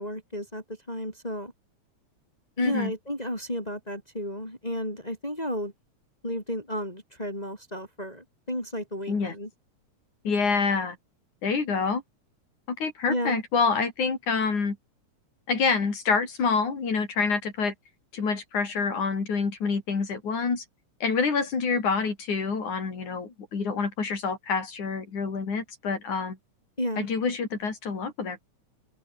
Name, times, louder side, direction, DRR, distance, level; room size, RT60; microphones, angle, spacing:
voice 1, 0.0-1.5 2.6-5.7 6.2-9.5 13.1-13.4 26.8-27.1, equal, 10° left, 7.4 m, -32 dB
voice 2, 2.6-2.9 9.1-9.3 10.2-11.0 11.4-12.0 12.7-14.8 15.5-17.7 18.1-20.6 21.0-26.4 27.0-28.4, left 5 dB, 75° left, 6.2 m, -27 dB
open air
omnidirectional pair, 3.4 m